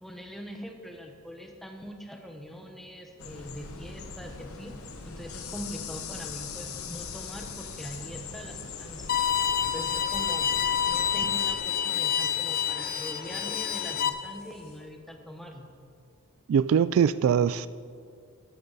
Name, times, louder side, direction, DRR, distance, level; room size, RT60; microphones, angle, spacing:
voice 1, 0.0-4.7 5.0-9.1 9.7-10.5 10.9-15.7, equal, ahead, 1.0 m, -42 dB
sound 1, 3.2-11.5, left 5 dB, 90° left, 0.9 m, -41 dB
sound 2, 4.8-14.8, left 2 dB, 70° left, 3.1 m, -54 dB
Bowed string instrument, 9.1-14.1, left 9 dB, 45° left, 0.6 m, -28 dB
voice 2, 16.5-17.7, right 7 dB, 70° right, 0.3 m, -22 dB
12.0 x 12.0 x 4.1 m
head